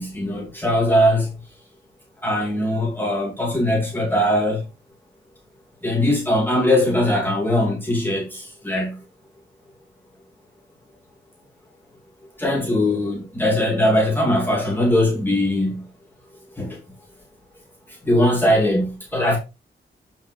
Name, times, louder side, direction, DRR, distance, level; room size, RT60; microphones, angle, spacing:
voice 1, 0.0-1.3 2.2-4.6 5.8-9.0 12.4-15.9 16.6-16.8 17.9-19.4, left 1 dB, 10° left, 2.6 m, -20 dB
8.5 x 5.6 x 3.2 m
wide cardioid pair, 155°, 20 cm